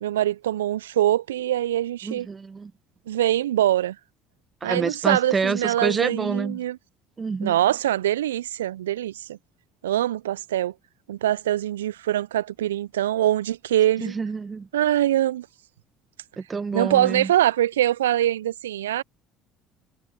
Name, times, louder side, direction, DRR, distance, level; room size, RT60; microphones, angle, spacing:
voice 1, 0.0-2.3 3.1-4.0 4.6-6.8 7.4-9.4 9.8-10.7 11.1-14.1 14.7-15.5 16.7-19.0, right 12 dB, 75° right, 0.5 m, -23 dB
voice 2, 2.0-2.7 4.6-6.6 7.2-7.6 14.0-14.7 16.4-17.3, right 4 dB, 25° right, 1.3 m, -27 dB
figure-of-eight pair, 60°, 0 cm